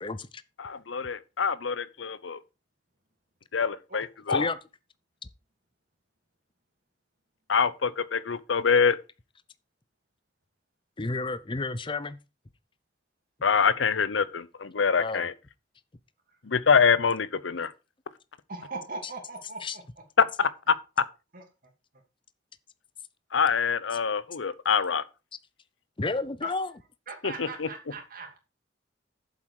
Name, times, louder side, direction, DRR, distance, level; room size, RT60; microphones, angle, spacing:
voice 1, 0.0-0.4 4.3-4.6 11.0-12.2 15.0-15.3 19.6-19.8 26.0-26.7, left 3 dB, 25° left, 0.6 m, -31 dB
voice 2, 0.6-2.4 3.5-4.5 7.5-9.0 13.4-15.3 16.4-17.7 20.2-21.1 23.3-25.0 27.2-27.7, left 6 dB, 80° left, 0.7 m, -25 dB
voice 3, 18.5-19.8 21.3-21.4 26.4-26.5 27.1-28.4, right 3 dB, 50° right, 2.8 m, -39 dB
8.1 x 7.4 x 4.8 m
head